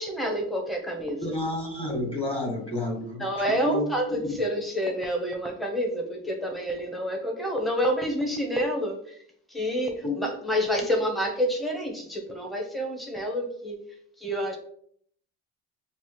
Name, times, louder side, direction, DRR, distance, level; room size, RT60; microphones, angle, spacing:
voice 1, 0.0-1.4 3.2-9.2 9.5-13.8 14.2-14.6, equal, ahead, 2 dB, 0.8 m, -28 dB
voice 2, 1.2-3.8 4.3-4.4 10.0-10.3, left 1 dB, 15° left, -1 dB, 1.6 m, -30 dB
5.3 x 2.5 x 3.0 m, 0.64 s
cardioid pair, 100°, 33 cm